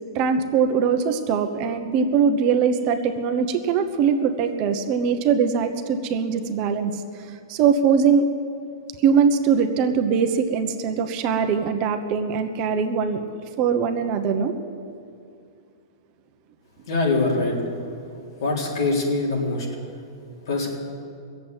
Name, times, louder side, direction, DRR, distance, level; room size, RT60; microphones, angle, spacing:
voice 1, 0.1-7.0 7.5-8.3 9.0-13.2 13.6-14.5, right 6 dB, 35° right, 7 dB, 0.9 m, -21 dB
voice 2, 16.9-17.5 18.4-19.7 20.5-20.7, left 3 dB, 75° left, -2 dB, 3.7 m, -23 dB
19.0 x 7.9 x 8.9 m, 2.4 s
hypercardioid pair, 155°, 2 cm